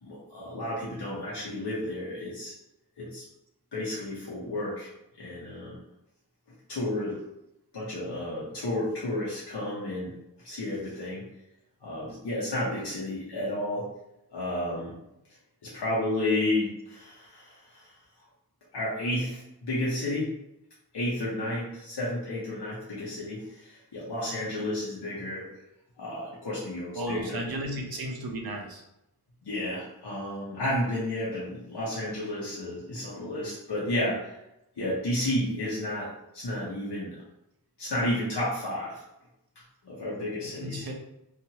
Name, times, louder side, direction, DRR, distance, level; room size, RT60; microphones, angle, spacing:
voice 1, 0.0-2.6 3.0-3.2 3.7-4.9 5.2-5.8 6.7-7.2 7.7-10.1 10.4-11.2 11.8-13.8 14.3-14.9 15.6-17.9 18.7-20.3 20.9-25.5 26.0-27.5 29.4-34.4 34.8-37.2 37.8-39.0 39.8-40.9, left 1 dB, 85° left, -7 dB, 0.8 m, -32 dB
voice 2, 26.9-28.8 40.6-40.9, right 1 dB, 65° right, 1 dB, 0.7 m, -34 dB
2.8 x 2.5 x 2.8 m, 0.85 s
wide cardioid pair, 50°, 40 cm